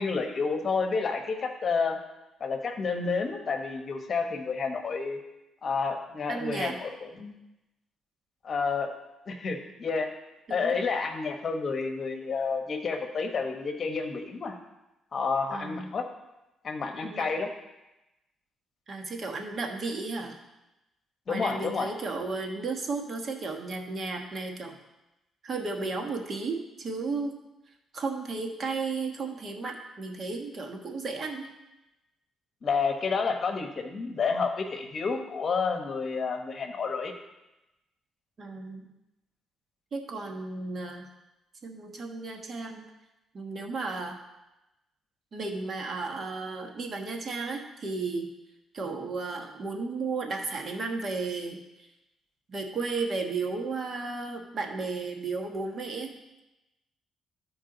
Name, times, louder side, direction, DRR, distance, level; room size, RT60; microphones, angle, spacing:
voice 1, 0.0-2.0 2.4-5.2 5.6-7.3 8.4-8.9 9.3-10.1 10.5-14.5 15.1-16.0 16.6-17.5 21.3-21.9 32.6-37.1, left 4 dB, 45° left, 5 dB, 1.1 m, -30 dB
voice 2, 6.3-6.8 10.5-10.8 15.5-15.9 17.0-17.3 18.9-20.4 21.3-24.8 25.4-27.4 27.9-31.5 38.4-38.9 39.9-41.1 41.6-42.8 43.3-44.2 45.3-48.3 48.7-51.6 52.5-56.1, right 3 dB, 45° right, 2 dB, 1.3 m, -34 dB
13.5 x 4.6 x 3.9 m, 0.96 s
cardioid pair, 90°, 0 cm